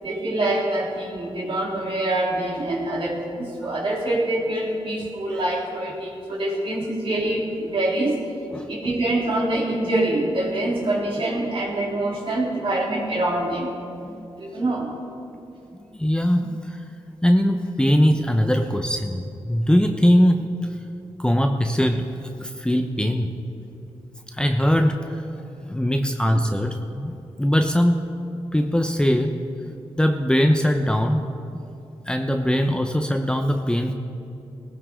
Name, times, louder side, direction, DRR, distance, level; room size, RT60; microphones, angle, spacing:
voice 1, 0.0-8.2 8.7-13.8 14.4-14.9, right 1 dB, 55° right, -3 dB, 3.6 m, -25 dB
voice 2, 16.0-16.8 17.2-20.5 21.2-23.3 24.3-25.2 25.7-28.0 28.5-29.4 30.0-31.2 32.1-33.9, equal, 10° left, 5 dB, 0.9 m, -21 dB
17.5 x 16.0 x 3.8 m, 2.7 s
cardioid pair, 55°, 11 cm